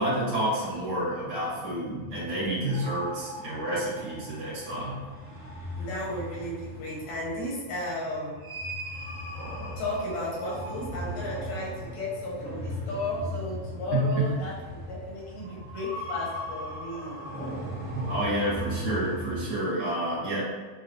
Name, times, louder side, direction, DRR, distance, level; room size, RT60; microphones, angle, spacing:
voice 1, 0.0-5.0 13.9-14.3 17.9-20.4, right 1 dB, 65° right, -10 dB, 2.8 m, -29 dB
sound 1, 0.7-19.5, equal, 45° right, 1.7 m, -38 dB
voice 2, 5.8-8.4 9.8-17.7, left 1 dB, 75° left, -5 dB, 2.5 m, -34 dB
6.8 x 2.3 x 2.5 m, 1.4 s
omnidirectional pair, 3.3 m